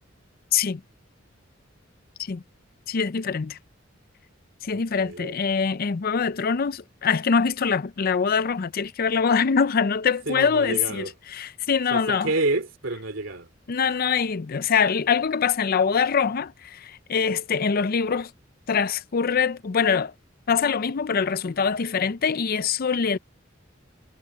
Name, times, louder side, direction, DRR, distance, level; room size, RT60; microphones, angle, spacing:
voice 1, 2.9-3.6 4.6-12.3 13.7-18.3 18.7-20.1 20.5-23.2, left 6 dB, 50° left, 0.5 m, -24 dB
voice 2, 4.7-5.3 10.3-11.1 11.9-13.5, right 2 dB, 75° right, 3.1 m, -29 dB
head